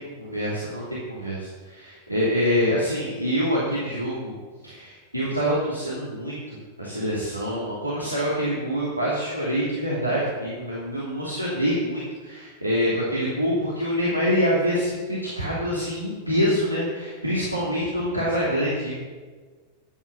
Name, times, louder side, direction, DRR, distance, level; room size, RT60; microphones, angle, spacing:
voice 1, 0.0-4.3 4.6-18.9, equal, 90° right, -7 dB, 2.8 m, -26 dB
13.0 x 9.4 x 6.1 m, 1.4 s
figure-of-eight pair, 90°, 0 cm